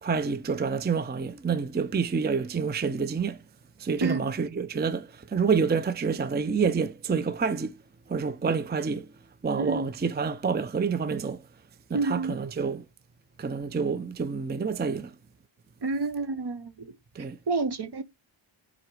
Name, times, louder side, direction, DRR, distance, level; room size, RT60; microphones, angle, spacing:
voice 1, 0.0-3.4 3.8-7.8 8.1-9.1 9.4-11.4 11.9-12.8 13.4-15.1 17.1-17.4, right 5 dB, 20° right, 0.4 m, -28 dB
voice 2, 11.9-12.3 15.8-17.0 17.5-18.0, right 3 dB, 55° right, 0.8 m, -29 dB
7.8 x 4.1 x 4.7 m
wide cardioid pair, 65°, 49 cm